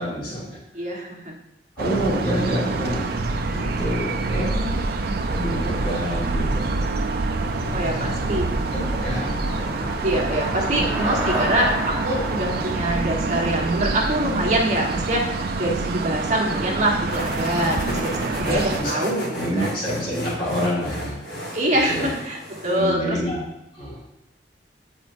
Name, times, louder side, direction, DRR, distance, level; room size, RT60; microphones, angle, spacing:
voice 1, 0.0-0.6 1.8-3.1 3.5-4.8 5.3-6.7 7.4-8.3 8.7-9.9 10.7-10.8 17.8-18.0 18.3-19.0 19.4-21.3 21.9-22.1 22.6-23.4 23.7-24.0, equal, 30° left, -10 dB, 2.0 m, -28 dB
voice 2, 0.7-1.3 7.7-8.4 8.7-9.2 10.0-19.3 19.6-19.7 21.5-23.2, right 1 dB, 40° right, -1 dB, 1.2 m, -24 dB
sound 1, 1.8-18.8, right 3 dB, 60° right, 0.6 m, -26 dB
Traffic noise roadway noise / Bicycle, 6.7-15.4, right 1 dB, 5° right, 1.2 m, -33 dB
sound 2, 17.1-22.9, equal, 55° left, 1.8 m, -33 dB
9.1 x 4.5 x 2.6 m, 0.89 s
head